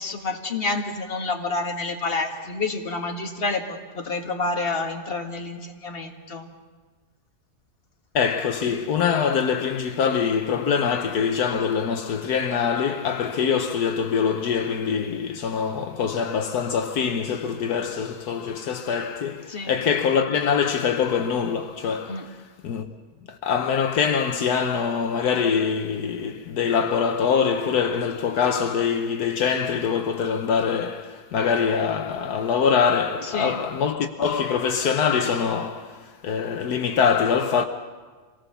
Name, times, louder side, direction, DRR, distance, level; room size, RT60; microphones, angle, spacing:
voice 1, 0.0-6.5 19.5-19.7 22.1-22.2 33.2-33.6, left 3 dB, 35° left, 1.9 m, -29 dB
voice 2, 8.1-22.9 23.3-37.6, left 6 dB, 75° left, 1.4 m, -24 dB
26.0 x 18.5 x 6.9 m
omnidirectional pair, 1.7 m